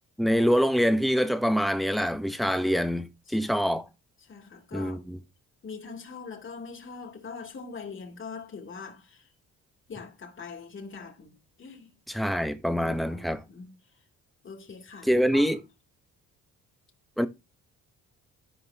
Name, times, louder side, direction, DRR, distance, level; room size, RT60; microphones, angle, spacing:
voice 1, 0.2-3.8 4.7-5.2 12.1-13.4 15.0-15.6 17.2-17.3, equal, ahead, 1.1 m, -25 dB
voice 2, 3.3-3.8 4.2-5.0 5.6-9.3 9.9-11.9 12.8-13.8 14.4-15.5, left 5 dB, 40° left, 3.1 m, -43 dB
13.5 x 5.1 x 3.0 m
cardioid pair, 90°, 30 cm